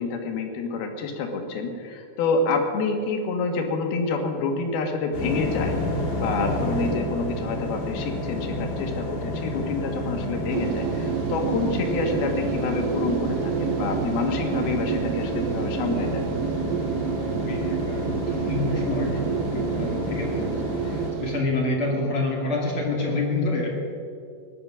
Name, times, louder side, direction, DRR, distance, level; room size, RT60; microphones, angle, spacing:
voice 1, 0.0-5.7 6.2-16.3, left 4 dB, 85° left, 4 dB, 3.5 m, -28 dB
sound 1, 5.1-21.1, left 1 dB, 55° left, 4.1 m, -30 dB
sound 2, 10.5-21.4, right 11 dB, 80° right, 2.2 m, -30 dB
voice 2, 17.0-23.7, left 2 dB, 40° left, 0 dB, 2.6 m, -28 dB
18.5 x 11.5 x 6.2 m, 2.4 s
omnidirectional pair, 4.2 m